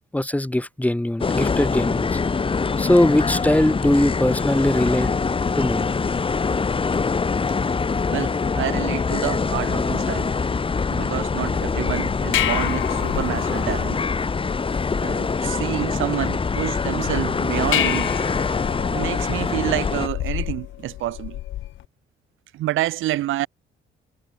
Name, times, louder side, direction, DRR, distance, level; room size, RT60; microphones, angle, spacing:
voice 1, 0.1-2.2 2.8-5.1 5.6-5.9, left 1 dB, 5° left, 1.9 m, -20 dB
sound 1, 1.2-20.1, left 4 dB, 25° left, 1.1 m, -24 dB
voice 2, 8.1-10.3 10.9-14.0 15.0-18.1 18.9-21.4 22.5-23.5, right 15 dB, 85° right, 1.6 m, -28 dB
sound 2, 11.9-21.8, left 13 dB, 80° left, 3.6 m, -30 dB
cardioid pair, 90°, 20 cm